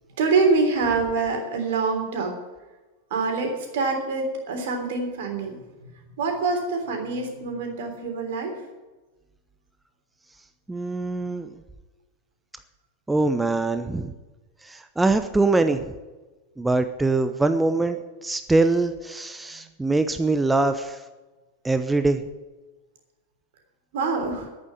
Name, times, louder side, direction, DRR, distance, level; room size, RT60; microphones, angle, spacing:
voice 1, 0.2-2.3 3.1-5.9 6.2-8.5 23.9-24.5, right 4 dB, 55° right, 3 dB, 3.4 m, -25 dB
voice 2, 10.7-11.5 13.1-14.1 14.6-15.9 16.6-21.0 21.6-22.2, right 3 dB, 10° right, 9 dB, 0.8 m, -23 dB
11.0 x 9.0 x 9.7 m, 1.2 s
figure-of-eight pair, 90°, 0 cm